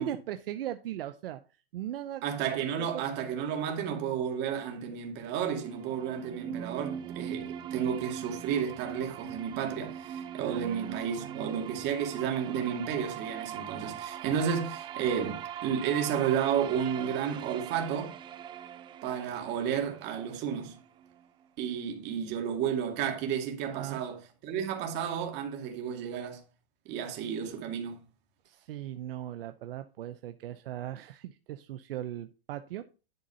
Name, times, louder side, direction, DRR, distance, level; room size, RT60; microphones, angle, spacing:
voice 1, 0.0-1.4 1.7-2.2 2.7-3.0 10.4-11.5 23.7-24.0 28.4-32.8, right 12 dB, 70° right, 0.8 m, -38 dB
voice 2, 2.2-18.2 19.0-20.8 21.6-26.4 26.9-28.0, right 8 dB, 35° right, 2.3 m, -32 dB
sound 1, 5.3-21.3, right 9 dB, 15° right, 0.4 m, -41 dB
11.0 x 3.8 x 5.6 m
hypercardioid pair, 135°, 30 cm